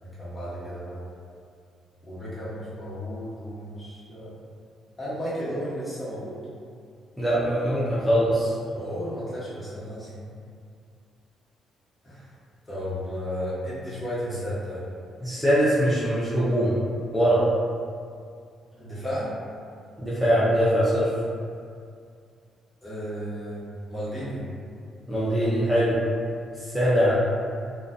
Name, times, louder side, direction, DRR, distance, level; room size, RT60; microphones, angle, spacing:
voice 1, 0.0-1.0 2.0-4.4 5.0-6.4 8.7-10.3 12.0-12.3 12.7-14.8 18.8-19.3 22.8-24.4, equal, 35° left, -10 dB, 1.2 m, -33 dB
voice 2, 7.2-8.5 15.2-16.7 17.1-17.4 20.0-21.1 25.1-26.0 26.7-27.2, equal, 5° right, -10 dB, 0.7 m, -22 dB
2.4 x 2.4 x 2.3 m, 2.3 s
supercardioid pair, 60°, 0 cm